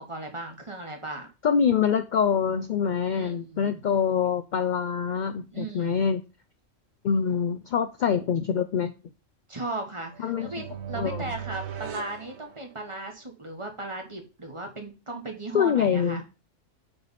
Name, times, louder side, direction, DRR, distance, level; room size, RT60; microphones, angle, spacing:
voice 1, 0.0-1.3 3.1-3.7 5.5-6.0 8.1-8.2 9.5-16.2, right 2 dB, 25° right, 3 dB, 1.1 m, -37 dB
voice 2, 1.4-6.2 7.0-8.9 10.2-10.5 11.0-11.2 15.5-16.2, left 7 dB, 75° left, 10 dB, 0.4 m, -25 dB
sound 1, 10.1-13.1, right 8 dB, 65° right, 0.9 m, -38 dB
8.9 x 3.3 x 4.1 m, 0.30 s
omnidirectional pair, 1.3 m